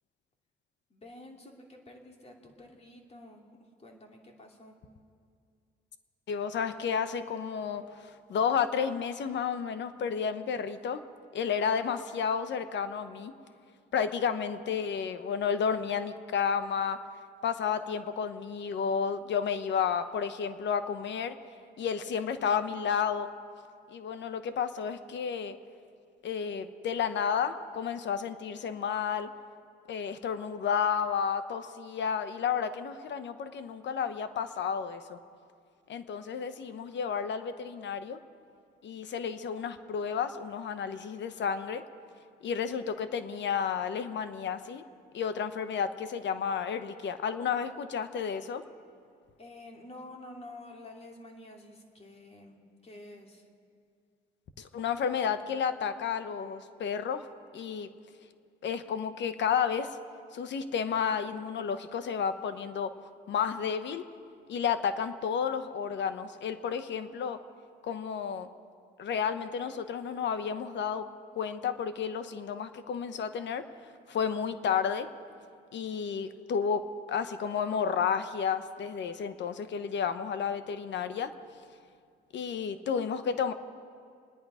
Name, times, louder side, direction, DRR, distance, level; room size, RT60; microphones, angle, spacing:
voice 1, 0.9-4.8 49.4-53.5, left 1 dB, 30° left, 1 dB, 2.8 m, -49 dB
voice 2, 6.3-11.0 11.3-13.3 13.9-17.0 17.4-21.3 21.8-23.3 23.9-25.6 26.2-29.3 29.9-35.2 35.9-38.2 38.8-41.8 42.4-44.8 45.1-48.6 54.6-57.3 57.5-57.9 58.6-60.0 60.3-62.9 63.3-64.0 64.5-67.4 67.8-68.5 69.0-71.1 71.3-73.6 74.1-75.1 75.7-81.3 82.3-83.5, left 7 dB, 65° left, 10 dB, 1.0 m, -31 dB
27.0 x 10.5 x 5.0 m, 2.3 s
cardioid pair, 90°, 20 cm